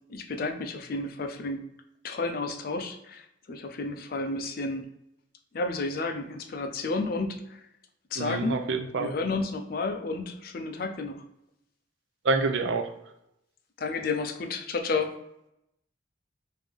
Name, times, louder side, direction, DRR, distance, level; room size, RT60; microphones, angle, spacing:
voice 1, 0.1-1.6 2.0-4.9 5.5-7.6 8.1-8.6 8.9-11.2 13.8-15.1, left 3 dB, 50° left, 6 dB, 0.4 m, -31 dB
voice 2, 8.2-9.1 12.2-12.9, right 3 dB, 70° right, 7 dB, 0.5 m, -27 dB
3.4 x 2.6 x 3.5 m, 0.82 s
head